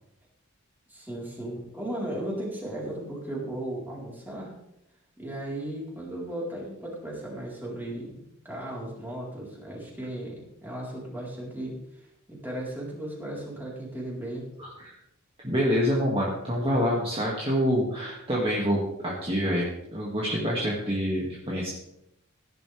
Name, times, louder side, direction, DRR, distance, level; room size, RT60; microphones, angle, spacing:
voice 1, 0.9-4.5 5.2-14.5, right 1 dB, 10° right, -4 dB, 4.2 m, -36 dB
voice 2, 14.6-15.0 15.4-21.7, equal, 25° right, -5 dB, 2.2 m, -27 dB
17.0 x 11.0 x 3.5 m, 0.82 s
head